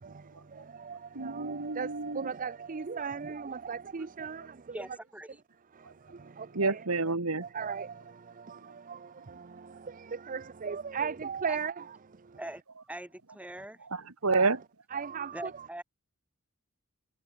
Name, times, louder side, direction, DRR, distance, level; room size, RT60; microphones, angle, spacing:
voice 1, 0.0-4.8 5.8-6.8 7.4-11.8 12.2-12.4 14.3-14.5 14.9-15.7, right 6 dB, 40° right, 0.6 m, -38 dB
voice 2, 1.1-2.3 6.5-7.5 13.8-14.6, right 3 dB, 80° right, 2.0 m, -29 dB
voice 3, 4.7-5.4 11.5-11.6 12.4-12.6 12.9-13.8 15.3-15.8, right 1 dB, 5° right, 2.8 m, -42 dB
head